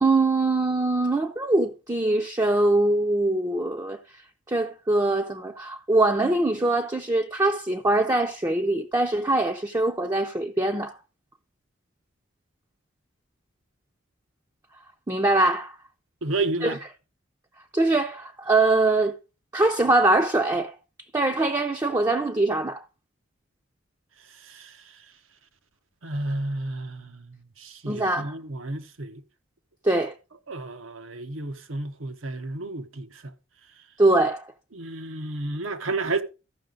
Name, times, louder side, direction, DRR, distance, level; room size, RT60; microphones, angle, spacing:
voice 1, 0.0-4.0 4.5-10.9 15.1-15.7 16.6-16.8 17.7-19.2 19.5-20.7 21.1-22.8 27.9-28.3 29.8-30.1 34.0-34.4, right 2 dB, 15° right, 0.5 m, -23 dB
voice 2, 16.2-16.8 24.5-24.8 26.0-29.2 30.5-33.3 34.7-36.2, right 2 dB, 90° right, 1.0 m, -31 dB
14.0 x 5.9 x 3.9 m
head